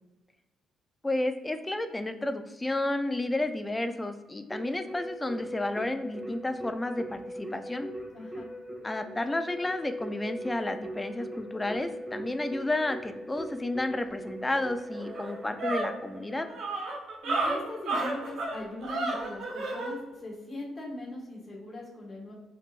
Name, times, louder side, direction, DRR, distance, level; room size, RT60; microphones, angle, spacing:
voice 1, 1.0-7.9 8.8-16.5, left 2 dB, 15° left, 8 dB, 0.4 m, -31 dB
Keyboard (musical), 4.5-16.9, equal, 20° right, 1.0 m, -40 dB
voice 2, 8.1-8.5 17.2-22.3, left 1 dB, 40° left, -4 dB, 1.5 m, -40 dB
sound 1, 14.5-14.6 14.9-19.9, right 2 dB, 80° right, 0.9 m, -32 dB
4.9 x 3.3 x 2.4 m, 1.1 s
cardioid pair, 90°, 0 cm